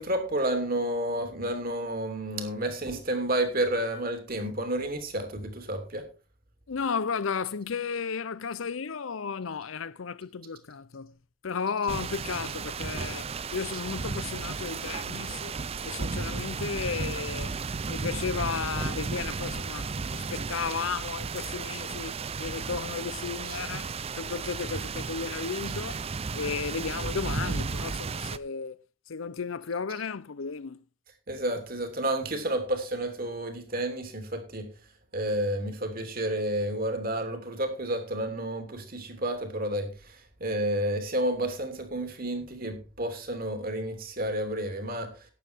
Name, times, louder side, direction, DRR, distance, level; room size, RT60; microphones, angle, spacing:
voice 1, 0.0-6.0 23.4-23.6 31.3-34.7 35.1-45.1, right 1 dB, 45° right, 2.8 m, -30 dB
voice 2, 6.7-11.1 11.4-15.5 15.8-17.5 17.9-26.0 26.3-28.8 29.1-30.8, left 5 dB, 75° left, 0.6 m, -34 dB
sound 1, 11.9-28.4, right 4 dB, 30° right, 0.5 m, -34 dB
12.0 x 9.6 x 4.5 m
head